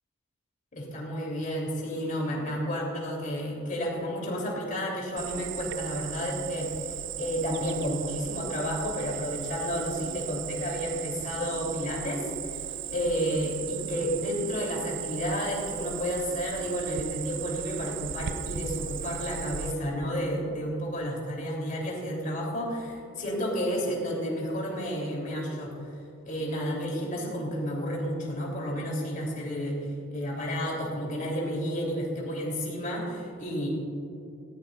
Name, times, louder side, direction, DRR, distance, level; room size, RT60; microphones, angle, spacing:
voice 1, 0.7-25.8 26.2-29.8 30.1-33.7, equal, 40° left, -2 dB, 3.3 m, -31 dB
Cricket, 5.2-19.7, right 10 dB, 60° right, 0.5 m, -37 dB
18.0 x 15.5 x 2.5 m, 2.8 s
head